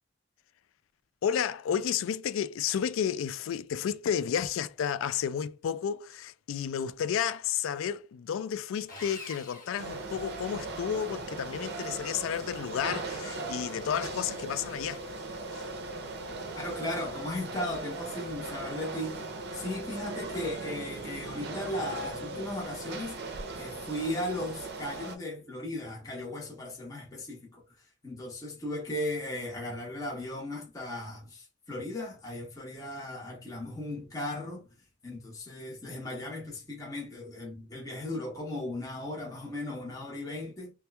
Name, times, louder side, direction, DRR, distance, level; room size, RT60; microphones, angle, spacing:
voice 1, 1.2-15.1, left 8 dB, 85° left, 0.3 m, -32 dB
Sawing, 8.9-10.8, left 3 dB, 40° left, 1.1 m, -47 dB
sound 1, 9.8-25.2, right 3 dB, 55° right, 0.5 m, -38 dB
voice 2, 16.5-19.2 19.5-23.2 23.6-27.6 28.0-34.7 35.0-40.7, left 1 dB, 15° left, 0.9 m, -36 dB
2.9 x 2.3 x 3.2 m
head